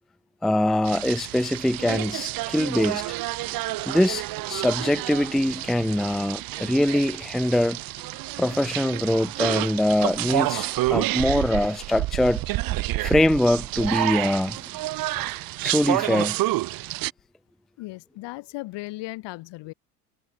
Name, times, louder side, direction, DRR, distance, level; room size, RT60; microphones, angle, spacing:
voice 1, 0.4-3.2 3.9-7.8 8.4-12.4 13.0-14.6 15.1-15.2 15.6-16.4, left 1 dB, ahead, 0.4 m, -23 dB
sound 1, 0.8-17.1, right 18 dB, 50° right, 0.7 m, -29 dB
voice 2, 17.8-19.7, left 20 dB, 65° left, 2.9 m, -36 dB
supercardioid pair, 85°, 45 cm